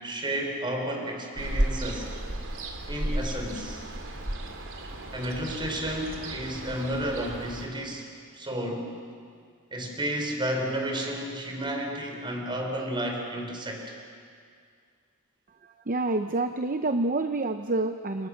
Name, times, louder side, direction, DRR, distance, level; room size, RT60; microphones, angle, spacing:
voice 1, 0.0-2.1 2.9-3.8 5.1-8.1 8.3-8.9 9.7-13.8, right 1 dB, 20° right, 2 dB, 4.6 m, -32 dB
Ocean, 1.4-7.7, right 1 dB, 60° right, 3.0 m, -33 dB
voice 2, 15.6-18.3, right 2 dB, 40° right, 8 dB, 0.8 m, -28 dB
30.0 x 28.0 x 6.6 m, 2.2 s
head